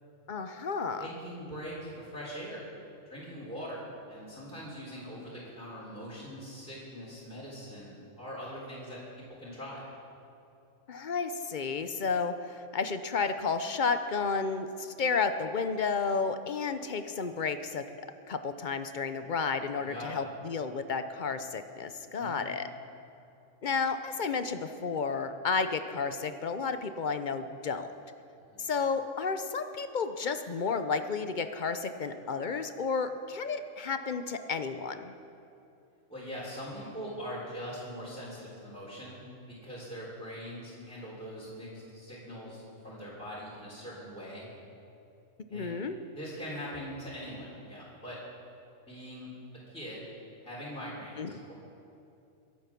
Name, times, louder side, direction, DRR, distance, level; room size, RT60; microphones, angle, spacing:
voice 1, 0.3-1.2 10.9-17.8 18.3-22.7 23.6-27.9 28.6-35.1 45.5-45.9 51.2-51.3, left 5 dB, 45° left, 9 dB, 0.7 m, -32 dB
voice 2, 1.0-2.6 3.0-3.8 4.1-9.0 9.4-9.9 19.8-20.2 22.0-22.4 28.5-28.6 36.1-44.5 45.5-45.8 46.1-48.2 48.9-49.3 49.7-50.0 50.4-51.5, equal, 5° left, -7 dB, 3.3 m, -42 dB
22.5 x 8.7 x 5.9 m, 2.7 s
omnidirectional pair, 1.3 m